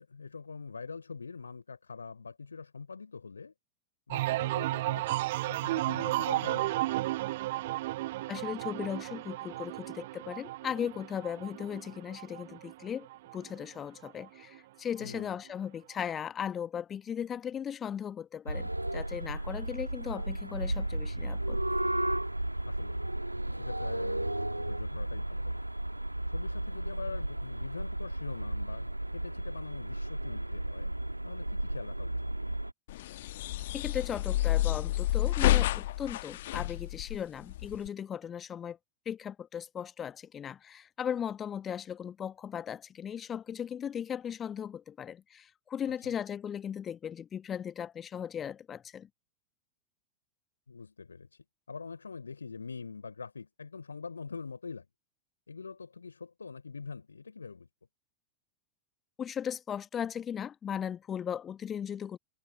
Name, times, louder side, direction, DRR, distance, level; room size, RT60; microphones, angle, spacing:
voice 1, 0.0-3.5 4.1-6.9 15.0-15.3 22.6-23.0 23.3-25.6 26.3-30.9 31.2-32.3 46.0-46.1 50.7-54.9 55.5-57.7, left 5 dB, 75° left, 3.6 m, -44 dB
sound 1, 4.1-13.7 14.0-14.6, right 17 dB, 55° right, 0.3 m, -33 dB
voice 2, 8.3-13.1 13.3-21.6 33.7-38.8 39.0-49.1 59.2-62.2, left 8 dB, 25° left, 1.3 m, -37 dB
sound 2, 18.5-32.7, right 1 dB, 85° right, 1.6 m, -34 dB
sound 3, 32.9-37.9, left 15 dB, 55° left, 1.1 m, -29 dB
figure-of-eight pair, 90°, 0 cm